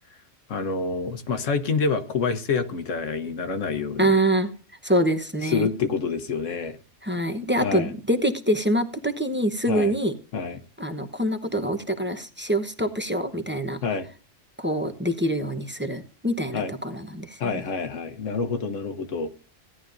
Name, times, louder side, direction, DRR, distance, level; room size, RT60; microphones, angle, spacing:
voice 1, 0.5-4.1 5.5-6.8 7.6-7.9 9.7-9.9 10.3-10.6 13.8-14.1 16.5-16.7 17.4-19.3, left 5 dB, 80° left, 8 dB, 1.3 m, -27 dB
voice 2, 4.0-4.5 4.8-5.7 7.0-10.1 10.8-13.8 14.6-17.6, right 1 dB, 10° right, 7 dB, 0.8 m, -25 dB
16.5 x 11.0 x 2.6 m, 0.38 s
omnidirectional pair, 1.3 m